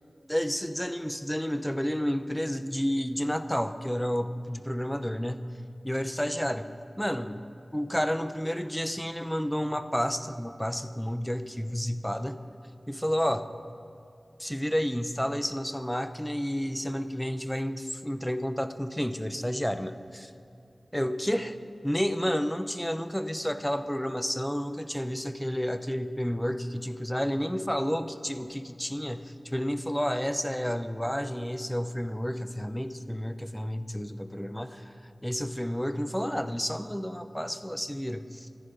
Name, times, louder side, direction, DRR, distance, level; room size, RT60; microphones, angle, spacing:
voice 1, 0.3-5.4 5.8-6.7 7.0-7.4 7.7-12.4 12.9-13.5 14.4-20.3 20.9-21.5 21.8-34.9 35.2-38.5, equal, 5° left, 10 dB, 0.8 m, -30 dB
25.5 x 10.5 x 3.9 m, 2.7 s
wide cardioid pair, 65°, 0 cm